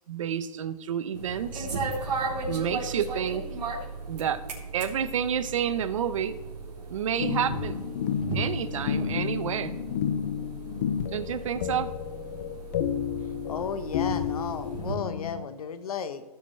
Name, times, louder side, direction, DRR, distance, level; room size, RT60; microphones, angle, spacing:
voice 1, 0.1-1.7 2.5-3.5 4.1-4.4 4.7-6.4 6.9-7.9 8.3-9.8 11.1-11.9, right 8 dB, 50° right, 13 dB, 0.8 m, -29 dB
sound 1, 1.1-15.0, right 3 dB, 80° right, 3.4 m, -36 dB
sound 2, 7.2-15.4, left 9 dB, 25° left, 0.4 m, -31 dB
voice 2, 13.5-16.2, left 6 dB, 60° left, 10 dB, 1.1 m, -34 dB
16.5 x 7.1 x 3.3 m, 1.2 s
hypercardioid pair, 160°, 21 cm